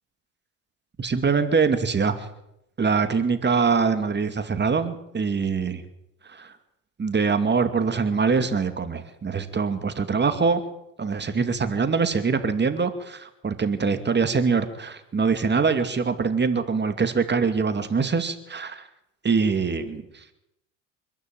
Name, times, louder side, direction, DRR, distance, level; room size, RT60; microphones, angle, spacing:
voice 1, 1.0-2.3 2.8-5.8 6.3-6.5 7.0-10.6 11.0-18.9 19.2-20.2, right 5 dB, 30° right, 9 dB, 2.5 m, -23 dB
26.0 x 12.5 x 9.4 m, 0.84 s
supercardioid pair, 75°, 35 cm